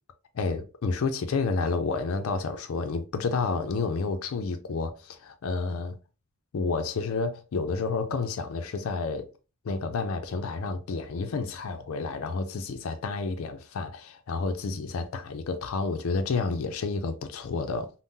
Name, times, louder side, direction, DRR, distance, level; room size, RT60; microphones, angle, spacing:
voice 1, 0.3-6.0 6.5-9.3 9.6-17.9, left 4 dB, 80° left, 0.4 m, -30 dB
3.6 x 2.0 x 2.6 m
head